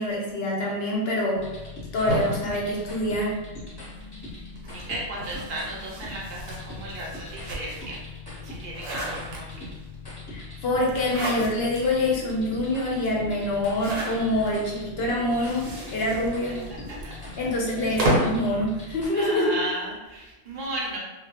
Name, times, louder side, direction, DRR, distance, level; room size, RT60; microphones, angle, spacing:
voice 1, 0.0-1.4 1.9-3.3 10.3-16.6 17.4-19.5, left 1 dB, 65° left, -2 dB, 0.7 m, -26 dB
sound 1, 1.3-19.1, left 2 dB, 25° left, 0.6 m, -40 dB
sound 2, 2.1-3.7 4.5-8.0 8.4-9.8 10.8-11.8 12.3-12.4 12.6-12.7 13.6-14.5 15.3-18.5, right 1 dB, 80° right, 1.0 m, -32 dB
voice 2, 4.7-8.0 8.3-9.7 16.5-16.6 17.0-17.1 19.1-21.0, right 1 dB, 55° right, -3 dB, 0.7 m, -35 dB
2.1 x 2.0 x 2.8 m, 1.1 s
omnidirectional pair, 1.3 m